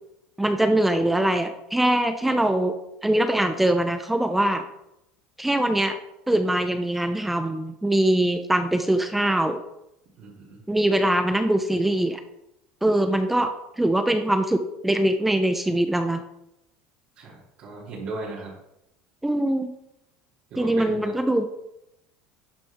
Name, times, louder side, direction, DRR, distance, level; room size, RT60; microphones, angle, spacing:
voice 1, 0.4-2.8 3.0-4.6 5.4-6.0 6.3-9.6 10.7-12.2 12.8-13.5 13.8-16.2 19.2-19.7 20.6-21.4, right 1 dB, 5° right, 7 dB, 0.7 m, -22 dB
voice 2, 10.2-10.6 17.2-18.6 20.5-21.2, right 2 dB, 55° right, -8 dB, 3.1 m, -36 dB
12.0 x 6.3 x 3.6 m, 0.84 s
supercardioid pair, 125°, 3 cm